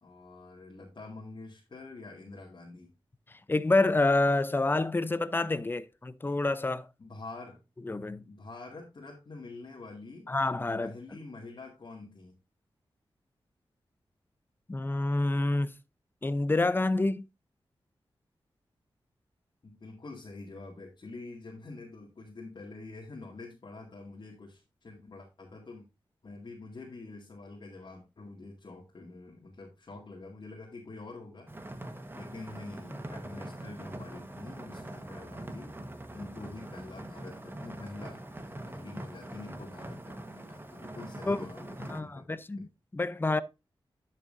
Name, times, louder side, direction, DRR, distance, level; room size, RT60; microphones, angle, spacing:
voice 1, 0.0-2.9 7.0-7.6 8.3-10.3 10.8-12.4 19.6-25.9 26.2-31.5 32.1-35.7 36.1-42.6, left 3 dB, 55° left, 2.1 m, -46 dB
voice 2, 3.5-6.9 7.9-8.2 10.3-10.9 14.7-15.7 16.2-17.3 41.3-41.4 41.9-43.4, left 2 dB, 20° left, 0.6 m, -28 dB
sound 1, 31.5-42.0, right 1 dB, 25° right, 1.3 m, -43 dB
11.0 x 6.7 x 2.6 m
wide cardioid pair, 80°, 9 cm